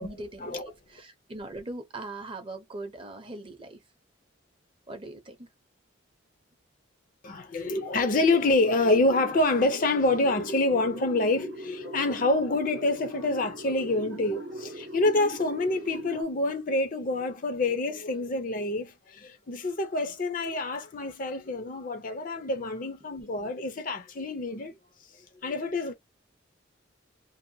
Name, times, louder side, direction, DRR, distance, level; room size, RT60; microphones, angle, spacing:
voice 1, 0.0-0.6 0.9-3.8 4.9-5.5, right 2 dB, 25° right, 0.6 m, -40 dB
voice 2, 7.2-24.7 25.4-25.9, left 2 dB, 40° left, 0.5 m, -27 dB
sound 1, 7.6-16.2, right 1 dB, 65° right, 0.7 m, -42 dB
2.6 x 2.1 x 2.7 m
head